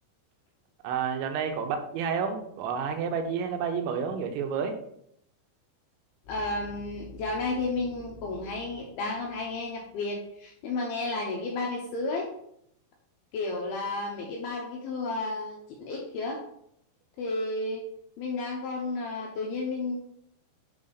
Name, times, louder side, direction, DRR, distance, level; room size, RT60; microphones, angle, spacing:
voice 1, 0.8-4.8, right 6 dB, 85° right, 5 dB, 3.1 m, -30 dB
sound 1, 6.2-10.2, right 1 dB, 50° left, 3.1 m, -49 dB
voice 2, 6.3-12.3 13.3-16.4 17.2-17.8 18.2-20.0, left 3 dB, 80° left, 0 dB, 2.3 m, -32 dB
7.7 x 3.4 x 4.0 m, 0.73 s
omnidirectional pair, 5.2 m